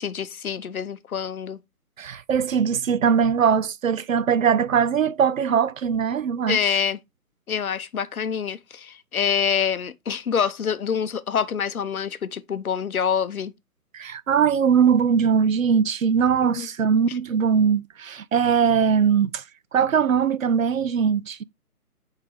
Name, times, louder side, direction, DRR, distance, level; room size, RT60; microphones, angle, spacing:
voice 1, 0.0-1.6 6.5-7.0 7.5-13.5 16.6-16.7, left 7 dB, 65° left, 0.7 m, -26 dB
voice 2, 2.0-6.8 13.9-19.4 19.7-21.4, right 7 dB, 60° right, 0.5 m, -21 dB
8.6 x 3.7 x 3.1 m
figure-of-eight pair, 150°, 46 cm